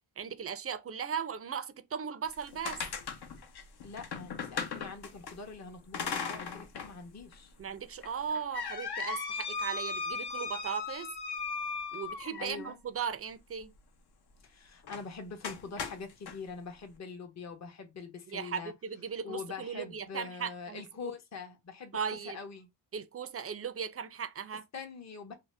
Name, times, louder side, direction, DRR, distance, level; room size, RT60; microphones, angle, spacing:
voice 1, 0.2-2.8 7.6-11.1 11.9-13.7 18.3-20.8 21.9-22.4 22.9-24.6, right 7 dB, 35° right, 0.4 m, -37 dB
sound 1, 2.2-5.3 5.9-6.9 7.3-7.4 8.0-12.7 14.8-15.0 15.4-16.4, left 5 dB, 65° left, 0.8 m, -37 dB
voice 2, 3.8-7.5 12.4-12.8 14.4-18.7 19.2-22.0 22.2-22.7 24.7-25.3, left 5 dB, 40° left, 0.8 m, -44 dB
2.7 x 2.0 x 3.2 m
cardioid pair, 75°, 43 cm